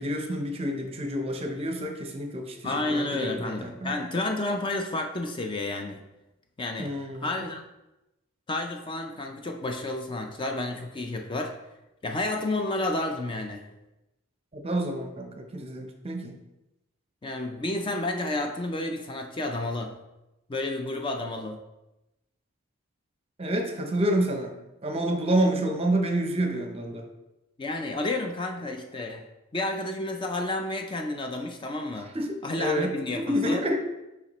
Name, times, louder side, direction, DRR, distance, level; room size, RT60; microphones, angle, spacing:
voice 1, 0.0-3.9 6.8-7.3 14.5-16.3 23.4-24.5 24.8-27.1 32.1-33.8, right 1 dB, 30° right, 4 dB, 0.7 m, -28 dB
voice 2, 2.6-6.0 6.6-6.9 7.2-7.6 8.5-11.6 12.0-13.7 17.2-19.9 20.5-21.6 27.6-29.2 29.5-32.1 32.4-33.6, left 2 dB, 25° left, 4 dB, 0.4 m, -31 dB
6.8 x 5.0 x 3.0 m, 0.97 s
head